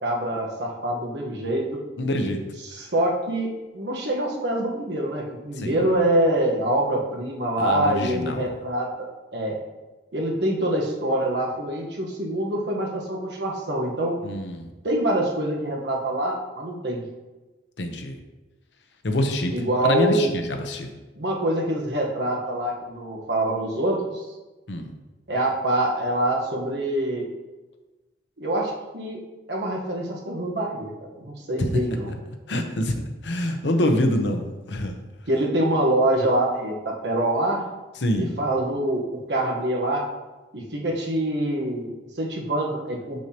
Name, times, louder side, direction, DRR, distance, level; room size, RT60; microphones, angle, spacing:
voice 1, 0.0-1.8 2.7-3.5 3.7-8.9 9.3-9.6 10.1-14.2 14.8-17.0 19.5-20.3 21.2-24.3 25.3-27.2 28.4-29.2 29.5-32.1 35.3-37.6 38.2-40.1 40.5-43.2, right 1 dB, 75° right, -1 dB, 1.2 m, -25 dB
voice 2, 2.0-2.4 2.8-2.9 5.6-5.9 7.6-8.6 14.2-14.7 17.8-18.2 19.0-19.5 19.8-20.9 24.7-24.9 31.6-31.8 32.5-35.0 38.0-38.3, left 1 dB, 80° left, 4 dB, 0.8 m, -25 dB
6.5 x 6.2 x 2.9 m, 1.2 s
head